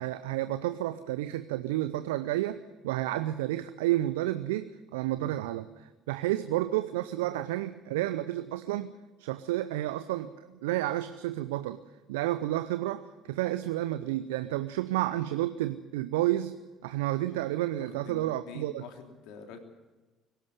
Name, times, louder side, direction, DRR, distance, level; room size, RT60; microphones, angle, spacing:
voice 1, 0.0-2.6 2.8-8.9 9.2-11.8 12.1-16.5 16.8-18.8, right 15 dB, 75° right, 11 dB, 0.7 m, -31 dB
voice 2, 17.8-19.6, left 6 dB, 65° left, 4 dB, 3.2 m, -46 dB
22.5 x 12.5 x 9.7 m, 1.2 s
figure-of-eight pair, 55°, 0 cm